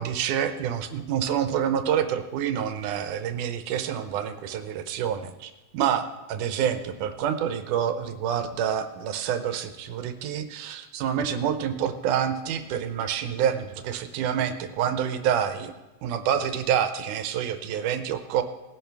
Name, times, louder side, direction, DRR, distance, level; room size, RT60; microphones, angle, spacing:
voice 1, 0.0-15.7 16.0-18.4, right 9 dB, 90° right, 9 dB, 2.4 m, -27 dB
19.5 x 10.5 x 3.4 m, 1.1 s
omnidirectional pair, 3.5 m